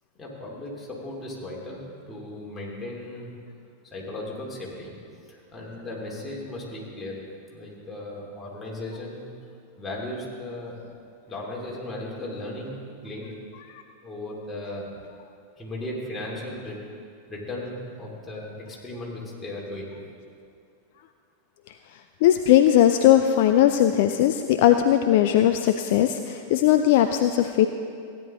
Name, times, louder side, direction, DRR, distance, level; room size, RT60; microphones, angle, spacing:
voice 1, 0.2-3.3 3.8-4.9 5.3-7.1 7.5-9.3 9.8-10.7 11.3-13.4 14.0-14.9 15.6-16.8 17.3-19.9, left 1 dB, 15° left, -4 dB, 2.8 m, -36 dB
voice 2, 22.2-27.7, left 11 dB, 50° left, 7 dB, 0.4 m, -19 dB
15.5 x 10.0 x 3.7 m, 2.4 s
figure-of-eight pair, 90°, 0 cm